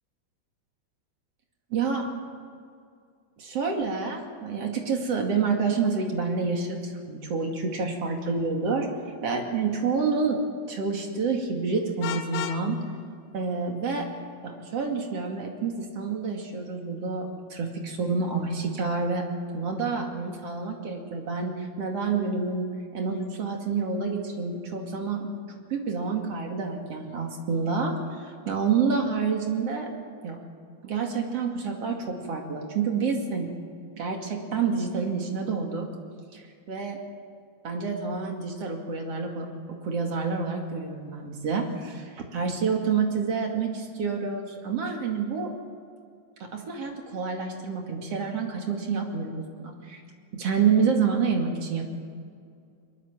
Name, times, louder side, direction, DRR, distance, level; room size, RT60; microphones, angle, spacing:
voice 1, 1.7-2.1 3.4-8.9 9.2-10.4 10.7-12.8 13.3-14.1 14.4-19.2 19.5-25.4 25.7-27.9 28.2-29.9 30.2-30.4 30.8-33.5 34.0-35.9 36.3-37.0 37.6-39.5 39.8-45.5 46.4-50.0 50.3-51.8, right 5 dB, 45° right, 2 dB, 2.4 m, -28 dB
Vehicle horn car horn honking, 12.0-12.6, left 10 dB, 70° left, 2.2 m, -32 dB
22.5 x 21.5 x 7.5 m, 2.3 s
omnidirectional pair, 5.5 m